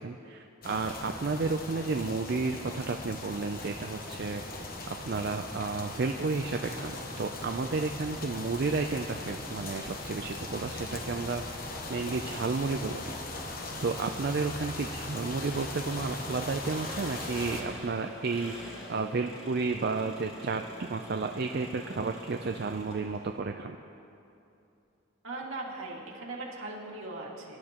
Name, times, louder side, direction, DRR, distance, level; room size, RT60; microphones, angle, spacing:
voice 1, 0.0-13.1 13.5-23.8, right 4 dB, 50° right, 5 dB, 0.4 m, -32 dB
sound 1, 0.6-17.6, left 2 dB, 45° left, 1.1 m, -39 dB
Engine, 15.3-23.4, equal, 25° left, 2.5 m, -46 dB
voice 2, 25.2-27.6, right 2 dB, 75° right, -3 dB, 2.2 m, -39 dB
23.5 x 11.5 x 3.0 m, 2.8 s
head